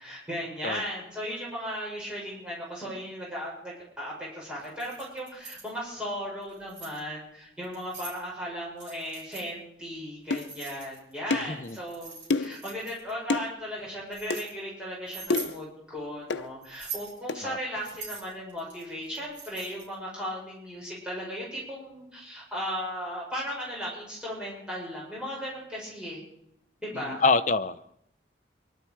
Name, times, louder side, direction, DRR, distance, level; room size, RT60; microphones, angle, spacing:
voice 1, 0.0-26.2 26.8-27.2, equal, 5° right, -6 dB, 6.4 m, -36 dB
Keys jangling, 4.6-5.7 6.4-7.0 7.6-8.2 8.8-9.5 10.3-11.2 11.6-13.1 13.8-14.5 15.1-15.6 16.6-17.2 17.8-19.9, right 5 dB, 80° right, 5.8 m, -42 dB
sound 1, 10.3-10.5 11.3-11.6 12.3-12.6 13.3-13.5 14.3-14.5 15.3-15.6 16.3-16.5 17.3-17.4, left 3 dB, 90° left, 0.8 m, -28 dB
voice 2, 11.5-11.8 17.4-17.6 26.9-28.0, left 4 dB, 40° left, 11 dB, 0.7 m, -26 dB
24.0 x 12.0 x 4.7 m, 0.76 s
head